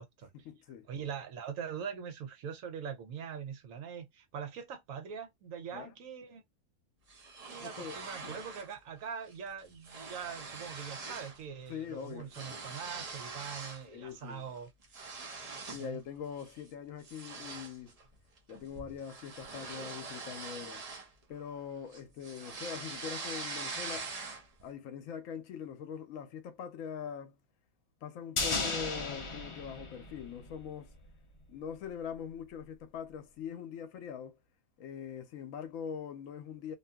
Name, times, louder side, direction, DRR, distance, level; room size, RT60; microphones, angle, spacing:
voice 1, 0.3-0.9 5.7-5.9 7.6-8.0 8.2-8.4 11.7-12.6 13.9-14.5 15.7-18.0 18.5-20.8 21.3-24.1 24.6-27.4 28.0-30.9 31.5-34.3 34.8-36.8, left 7 dB, 70° left, 1.0 m, -43 dB
voice 2, 0.9-6.4 7.5-14.7 15.8-16.0, right 7 dB, 75° right, 1.1 m, -42 dB
sound 1, 7.1-8.7 9.1-9.3 9.6-11.4 11.7-13.9 14.3-15.9 16.4-16.6 17.0-21.6 21.9-24.6, right 4 dB, 45° right, 0.5 m, -43 dB
sound 2, 28.4-30.7 31.0-31.1, left 3 dB, 45° left, 0.4 m, -35 dB
2.7 x 2.6 x 2.2 m
omnidirectional pair, 1.5 m